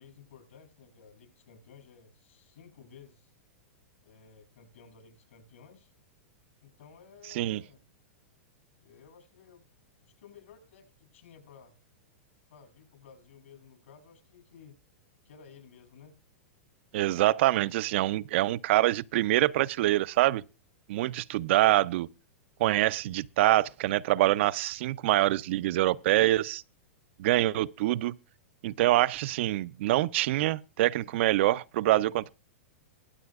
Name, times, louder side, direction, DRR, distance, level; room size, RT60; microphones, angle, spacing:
voice 1, 0.0-3.3 4.0-5.9 6.6-7.8 8.8-9.6 10.0-11.8 12.5-14.8 15.2-16.1, left 6 dB, 75° left, 7.1 m, -55 dB
voice 2, 16.9-20.4 20.9-22.1 22.6-26.6 27.2-28.2 28.6-32.3, right 15 dB, 60° right, 0.5 m, -25 dB
23.0 x 7.8 x 2.4 m
hypercardioid pair, 125°, 7 cm